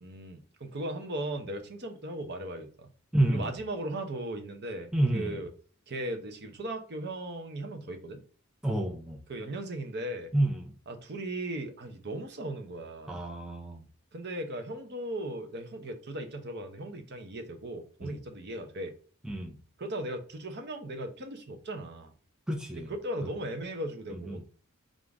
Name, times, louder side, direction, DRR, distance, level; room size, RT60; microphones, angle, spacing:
voice 1, 0.0-2.9 3.3-5.5 5.9-8.2 9.3-10.3 10.9-13.2 14.1-18.9 19.8-22.1 22.9-24.5, right 1 dB, 50° right, 0.7 m, -37 dB
voice 2, 3.1-3.5 4.9-5.4 8.6-9.2 10.3-10.7 13.1-13.9 18.0-18.2 19.3-19.6 22.5-22.9 24.1-24.4, right 1 dB, 5° right, 0.4 m, -29 dB
3.7 x 2.5 x 4.7 m
head